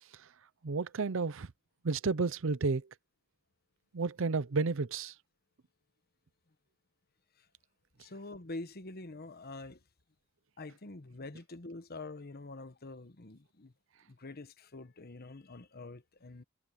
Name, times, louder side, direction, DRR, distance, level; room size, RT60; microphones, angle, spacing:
voice 1, 0.6-1.5 1.8-2.9 3.9-5.1, right 4 dB, 65° right, 0.6 m, -32 dB
voice 2, 8.0-9.8 10.6-13.7 14.1-16.4, left 2 dB, 45° left, 1.1 m, -46 dB
head